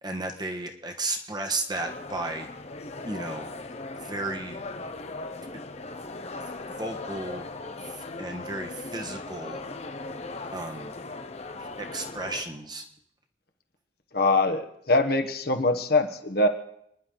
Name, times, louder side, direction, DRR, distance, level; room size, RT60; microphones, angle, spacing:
voice 1, 0.0-2.5 3.0-3.5 3.9-4.6 6.8-7.5 7.8-9.7 10.5-10.9 11.6-12.8, right 2 dB, 20° right, 3 dB, 1.3 m, -34 dB
sound 1, 1.7-12.4, left 3 dB, 35° left, 0.9 m, -38 dB
voice 2, 14.1-16.5, left 2 dB, 55° left, 6 dB, 1.3 m, -23 dB
29.5 x 11.0 x 4.0 m, 0.74 s
head